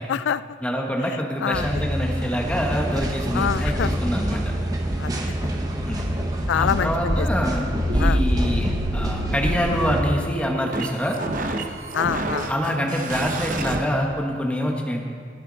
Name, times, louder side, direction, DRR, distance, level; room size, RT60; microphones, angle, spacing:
voice 1, 0.1-0.4 1.4-1.7 3.3-3.9 5.0-5.1 6.2-7.3 8.0-8.2 11.9-12.5, left 8 dB, 80° left, 18 dB, 0.3 m, -25 dB
voice 2, 0.6-4.5 5.9-6.0 6.5-11.2 12.5-15.0, equal, 5° left, 0 dB, 1.2 m, -26 dB
sound 1, 1.5-10.0, equal, 20° right, 1.0 m, -25 dB
sound 2, 7.9-13.8, right 2 dB, 45° right, 0.8 m, -31 dB
22.0 x 8.1 x 4.0 m, 2.1 s
head